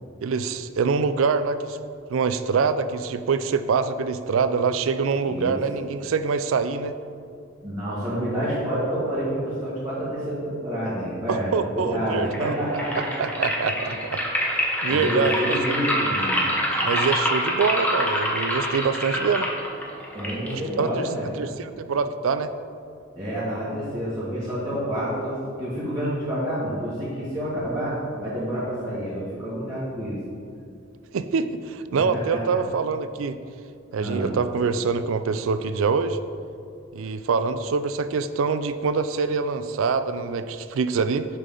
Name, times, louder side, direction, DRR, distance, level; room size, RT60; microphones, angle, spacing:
voice 1, 0.2-1.8 2.1-6.9 11.3-12.5 13.2-14.2 14.8-15.9 16.8-19.5 20.5-21.1 21.4-22.5 31.1-33.4 33.9-36.2 36.9-41.3, right 5 dB, 80° right, 11 dB, 0.4 m, -25 dB
voice 2, 5.1-5.6 7.6-13.1 14.9-16.5 20.1-21.4 23.1-30.2 32.1-32.4 34.0-34.3, equal, 20° right, -12 dB, 1.8 m, -28 dB
sound 1, 12.2-21.2, equal, 10° left, 0.8 m, -26 dB
8.1 x 5.7 x 3.8 m, 2.4 s
head